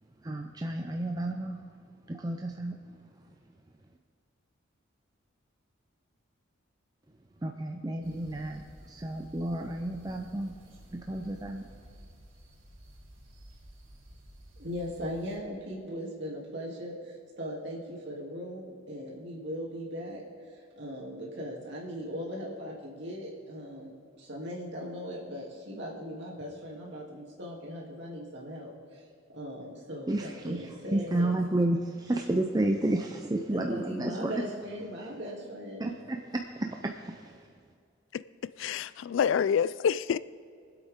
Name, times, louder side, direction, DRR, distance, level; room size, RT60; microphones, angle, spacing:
voice 1, 0.2-1.6 2.1-3.0 7.4-10.6 10.9-11.7 30.1-34.3 35.0-35.1 35.8-37.5, right 1 dB, 20° right, 0.5 m, -31 dB
sound 1, 8.0-15.4, equal, 80° right, 2.7 m, -53 dB
voice 2, 14.6-23.9 24.2-29.0 29.3-30.1 30.4-31.3 33.5-35.9, equal, 60° right, 2.8 m, -39 dB
voice 3, 38.1-40.2, left 7 dB, 70° left, 0.3 m, -28 dB
23.5 x 8.1 x 3.7 m
head